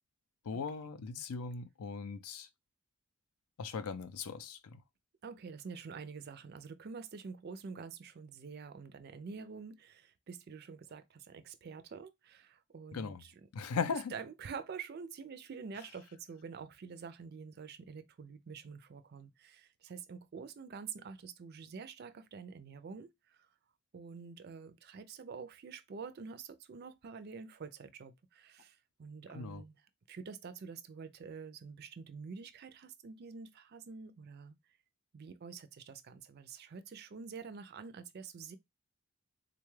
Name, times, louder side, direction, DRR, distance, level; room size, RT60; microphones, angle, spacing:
voice 1, 0.4-2.5 3.6-4.8 12.9-13.2 13.5-14.1 29.3-29.6, left 5 dB, 80° left, 0.5 m, -38 dB
voice 2, 5.2-13.3 13.9-23.5 23.9-29.7 30.1-34.6 35.1-38.6, right 5 dB, 45° right, 0.4 m, -47 dB
3.8 x 2.3 x 3.1 m
head